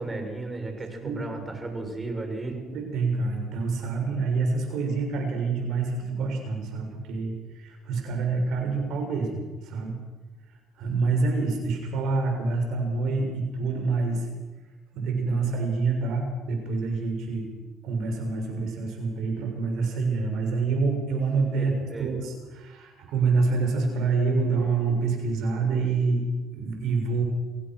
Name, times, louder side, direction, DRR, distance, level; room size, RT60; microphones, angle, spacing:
voice 1, 0.0-2.6 21.5-22.1, right 2 dB, 25° right, 4 dB, 6.2 m, -34 dB
voice 2, 2.5-9.9 10.8-14.2 14.9-17.4 17.8-21.7 22.0-26.3 26.5-27.2, right 4 dB, 75° right, 3 dB, 6.8 m, -27 dB
26.5 x 17.0 x 6.3 m, 1.3 s
supercardioid pair, 70°, 0 cm